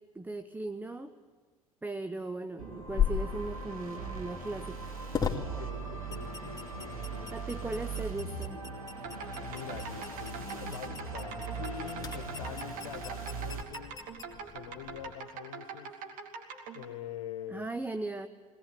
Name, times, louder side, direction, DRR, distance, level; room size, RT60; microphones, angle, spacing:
voice 1, 0.1-1.1 1.8-4.9 7.3-8.7 17.5-18.3, right 2 dB, 10° right, 11 dB, 0.9 m, -38 dB
sound 1, 2.6-13.6, right 4 dB, 85° right, 2.2 m, -40 dB
sound 2, 2.9-15.1, left 7 dB, 20° left, 2.4 m, -39 dB
voice 2, 5.3-7.7 9.4-14.0 14.5-16.0 16.7-17.7, left 10 dB, 70° left, 11 dB, 1.3 m, -45 dB
sound 3, 8.9-16.8, right 5 dB, 50° right, 2.7 m, -44 dB
20.5 x 19.0 x 9.2 m, 1.5 s
figure-of-eight pair, 60°, 18 cm